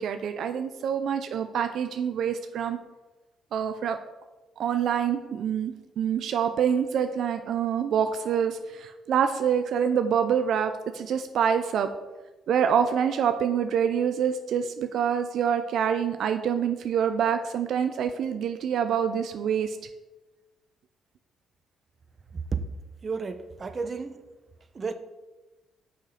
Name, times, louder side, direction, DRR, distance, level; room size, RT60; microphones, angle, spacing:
voice 1, 0.0-2.8 3.5-4.0 4.6-11.9 12.5-19.8, right 8 dB, 70° right, 8 dB, 0.5 m, -26 dB
voice 2, 23.0-24.2 24.7-24.9, right 4 dB, 35° right, 9 dB, 0.7 m, -33 dB
6.3 x 5.8 x 5.0 m, 1.1 s
cardioid pair, 90°, 0 cm